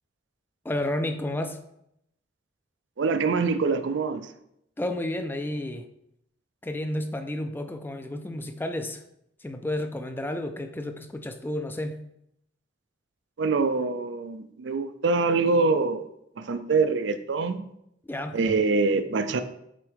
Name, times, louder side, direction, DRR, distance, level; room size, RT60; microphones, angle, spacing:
voice 1, 0.6-1.6 4.8-5.8 6.6-9.0 9.4-12.0 18.1-18.4, left 1 dB, 10° left, 7 dB, 0.4 m, -31 dB
voice 2, 3.0-4.3 13.4-16.1 16.4-17.7 18.3-19.4, right 4 dB, 65° right, 10 dB, 0.4 m, -25 dB
7.5 x 3.7 x 3.4 m, 0.77 s
head